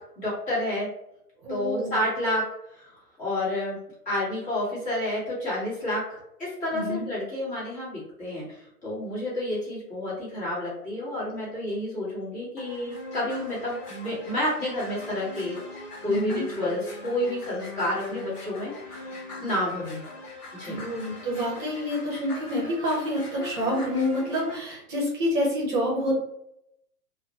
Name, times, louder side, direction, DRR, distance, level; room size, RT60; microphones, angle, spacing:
voice 1, 0.2-0.9 1.5-2.4 2.7-2.9 3.2-3.8 4.0-15.6 16.0-19.1 19.4-20.0 20.5-20.8, left 1 dB, 15° left, -8 dB, 1.1 m, -30 dB
voice 2, 1.4-2.0 6.7-7.1 16.1-16.4 20.6-26.2, equal, 35° right, -4 dB, 0.8 m, -27 dB
sound 1, 12.6-24.6, left 2 dB, 80° left, 0.8 m, -41 dB
2.5 x 2.1 x 2.8 m, 0.78 s
figure-of-eight pair, 110°, 46 cm